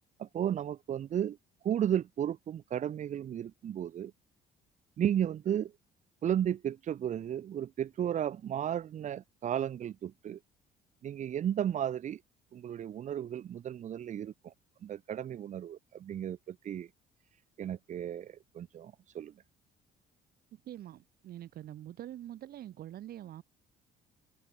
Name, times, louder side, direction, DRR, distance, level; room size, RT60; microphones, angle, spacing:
voice 1, 0.2-1.4 1.6-4.1 5.0-5.7 6.2-10.4 11.0-12.2 12.5-14.5 14.8-16.9 17.6-19.3, right 10 dB, 45° right, 0.9 m, -34 dB
voice 2, 20.5-23.4, right 12 dB, 65° right, 4.9 m, -45 dB
cardioid pair, 110°, 17 cm